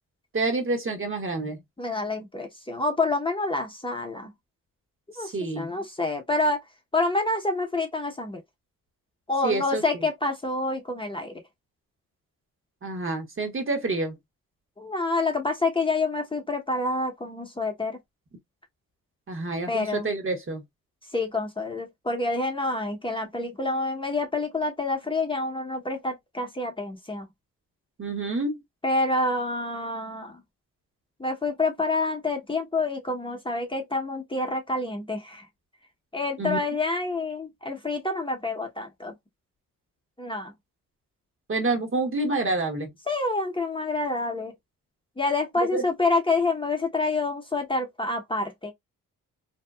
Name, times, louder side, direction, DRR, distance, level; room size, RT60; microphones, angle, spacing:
voice 1, 0.3-1.6 5.2-5.7 9.4-9.8 12.8-14.2 19.3-20.6 28.0-28.6 36.4-36.6 41.5-42.9 45.7-45.8, right 2 dB, 35° right, 1.1 m, -28 dB
voice 2, 1.8-4.3 5.2-6.6 6.9-8.4 9.3-11.4 14.8-18.0 19.7-20.1 21.1-27.3 28.8-30.4 31.2-35.4 36.1-39.1 40.2-40.5 43.1-44.5 45.2-48.7, left 2 dB, 15° left, 0.8 m, -27 dB
2.8 x 2.2 x 2.3 m
supercardioid pair, 60°, 34 cm